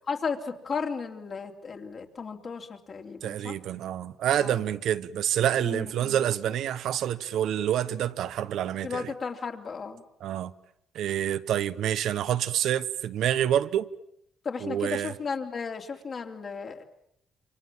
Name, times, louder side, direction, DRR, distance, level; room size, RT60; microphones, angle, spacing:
voice 1, 0.1-3.6 4.4-4.5 5.6-6.2 8.8-10.0 14.4-16.8, left 5 dB, 45° left, 3.1 m, -34 dB
voice 2, 3.2-9.1 10.2-10.5 10.9-13.9 14.6-15.1, right 10 dB, 80° right, 1.0 m, -27 dB
28.0 x 24.5 x 7.5 m
cardioid pair, 90°, 0 cm